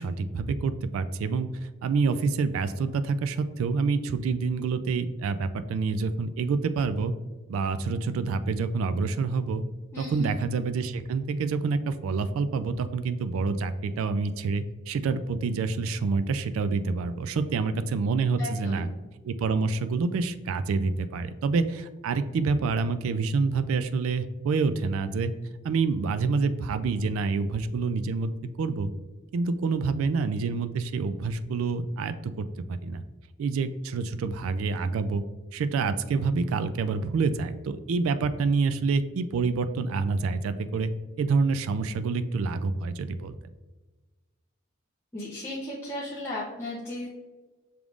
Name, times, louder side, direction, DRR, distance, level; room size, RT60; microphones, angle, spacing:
voice 1, 0.0-1.5 1.8-7.1 7.5-9.6 10.0-18.9 19.2-25.3 25.6-28.3 28.6-28.9 29.3-33.0 33.4-35.2 35.5-40.9 41.2-43.3, right 4 dB, 80° right, 11 dB, 0.3 m, -27 dB
voice 2, 9.9-10.3 18.4-18.9 45.1-47.1, left 1 dB, 15° left, -8 dB, 0.7 m, -35 dB
6.2 x 3.5 x 2.4 m, 1.2 s
head